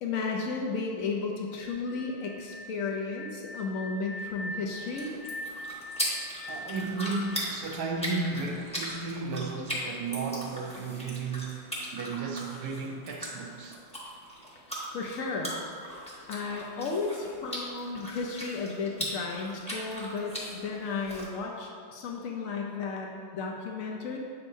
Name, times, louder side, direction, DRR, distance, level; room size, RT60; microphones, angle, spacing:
voice 1, 0.0-5.2 14.5-14.6 14.9-15.5 16.3-24.2, left 4 dB, 80° left, 0 dB, 0.7 m, -34 dB
sound 1, 1.5-8.4, left 1 dB, 50° left, 0.3 m, -42 dB
sound 2, 4.7-21.3, equal, 5° left, 0.8 m, -39 dB
voice 2, 6.5-13.8, right 4 dB, 70° right, 2 dB, 0.9 m, -34 dB
7.7 x 5.5 x 2.6 m, 2.2 s
omnidirectional pair, 2.1 m